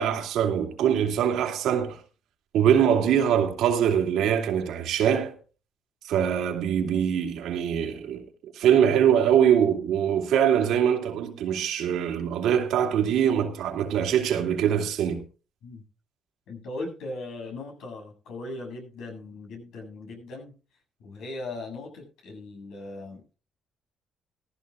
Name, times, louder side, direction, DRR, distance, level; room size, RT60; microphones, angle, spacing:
voice 1, 0.0-2.0 2.5-5.3 6.0-8.3 8.5-15.2, right 9 dB, 80° right, 2.4 m, -23 dB
voice 2, 16.5-20.5 21.0-23.4, left 2 dB, 80° left, 7.7 m, -38 dB
18.0 x 15.0 x 2.4 m
cardioid pair, 95°, 0 cm